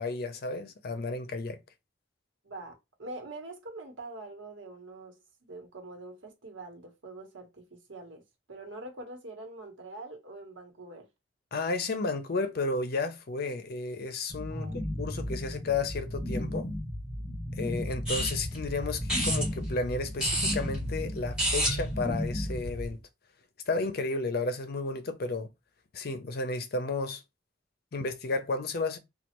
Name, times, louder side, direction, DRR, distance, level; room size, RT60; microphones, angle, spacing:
voice 1, 0.0-1.6 11.5-16.7 17.6-23.0 23.7-25.5 25.9-27.2 27.9-29.0, left 3 dB, 55° left, 0.5 m, -32 dB
voice 2, 2.4-8.2 8.5-11.1 14.5-14.8, right 2 dB, 85° right, 1.1 m, -44 dB
sound 1, 14.3-22.9, left 1 dB, 10° left, 1.6 m, -35 dB
sound 2, 18.1-22.9, right 1 dB, 5° right, 2.0 m, -33 dB
3.2 x 2.3 x 2.9 m
head